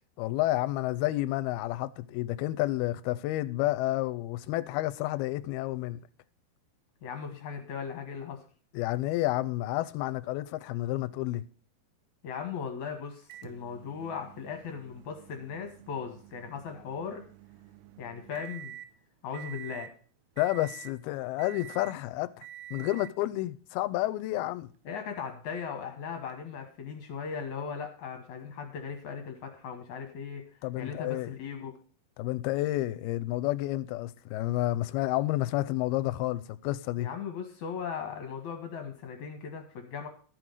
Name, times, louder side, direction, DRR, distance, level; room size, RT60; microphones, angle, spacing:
voice 1, 0.2-6.0 8.7-11.4 20.4-24.7 30.6-31.3 32.2-37.1, left 16 dB, 80° left, 2.5 m, -30 dB
voice 2, 7.0-8.4 12.2-17.2 18.0-18.7 19.2-19.9 24.9-30.4 30.8-31.7 37.0-40.1, left 6 dB, 60° left, 2.2 m, -38 dB
Microwave oven, 13.3-18.9 19.3-20.0 20.4-21.0 21.4-22.0 22.4-23.2 24.2-24.3 26.3-26.4, right 13 dB, 90° right, 2.7 m, -48 dB
13.0 x 6.2 x 6.6 m
omnidirectional pair, 4.6 m